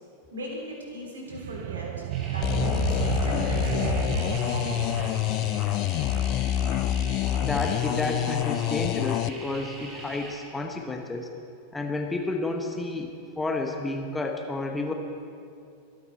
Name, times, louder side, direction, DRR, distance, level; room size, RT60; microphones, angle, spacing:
voice 1, 0.3-5.1, equal, 70° right, -1 dB, 3.5 m, -38 dB
sound 1, 1.3-6.3, right 15 dB, 50° right, 0.4 m, -32 dB
sound 2, 2.1-10.4, right 2 dB, 30° right, 3.0 m, -42 dB
sound 3, 2.4-9.3, left 12 dB, 40° left, 0.4 m, -27 dB
voice 2, 7.4-11.3 11.7-14.9, left 2 dB, 10° left, 3 dB, 1.1 m, -31 dB
25.0 x 9.3 x 4.2 m, 2.4 s
figure-of-eight pair, 90°, 0 cm